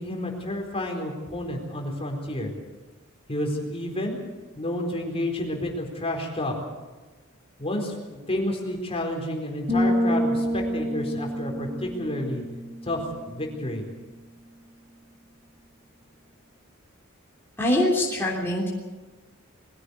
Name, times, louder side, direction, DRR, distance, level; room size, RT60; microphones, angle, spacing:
voice 1, 0.0-2.5 3.3-4.2 4.6-6.5 7.6-12.4 12.8-13.8, left 1 dB, 30° left, 2 dB, 4.3 m, -30 dB
sound 1, 9.7-13.4, equal, 30° right, 4.9 m, -27 dB
voice 2, 17.6-18.7, left 1 dB, 10° left, -4 dB, 3.4 m, -23 dB
22.0 x 16.5 x 8.2 m, 1.2 s
head